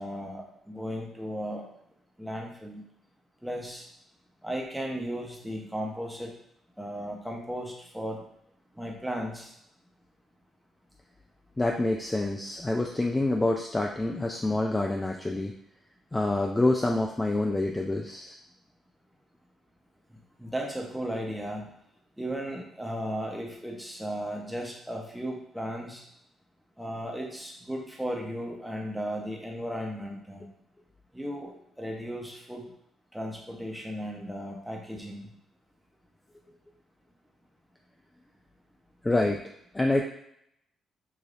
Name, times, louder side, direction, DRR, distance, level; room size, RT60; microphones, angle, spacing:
voice 1, 0.0-1.7 2.2-2.9 3.4-3.9 4.4-6.3 6.8-8.2 8.7-9.5 20.1-21.7 22.2-26.0 26.8-30.5 31.1-32.6 33.1-35.3, equal, ahead, 0 dB, 0.8 m, -35 dB
voice 2, 11.6-15.5 16.1-18.3 39.0-39.5 39.7-40.0, left 2 dB, 15° left, 2 dB, 0.3 m, -27 dB
4.9 x 2.6 x 2.5 m, 0.74 s
cardioid pair, 90°, 0 cm